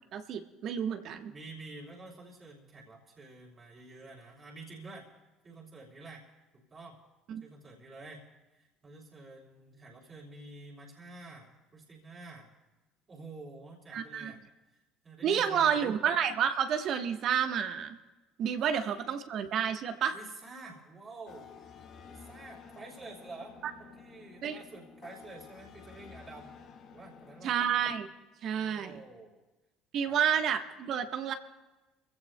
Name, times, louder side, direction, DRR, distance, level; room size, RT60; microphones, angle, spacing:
voice 1, 0.1-1.3 7.3-7.4 13.9-14.3 15.2-18.0 18.4-20.1 24.4-24.6 27.4-28.1 28.4-29.0 29.9-31.3, right 8 dB, 55° right, 7 dB, 1.1 m, -30 dB
voice 2, 1.3-5.1 5.4-6.3 6.5-7.0 7.4-8.2 8.5-12.5 13.1-14.4 15.0-16.0 18.6-18.7 20.1-21.5 22.1-23.5 23.8-26.5 26.9-27.5 28.5-29.4 30.1-30.2, right 2 dB, 30° right, -3 dB, 2.9 m, -49 dB
sound 1, 21.3-27.8, left 6 dB, 55° left, 1.7 m, -52 dB
25.5 x 16.0 x 2.2 m, 1.1 s
hypercardioid pair, 65°, 0 cm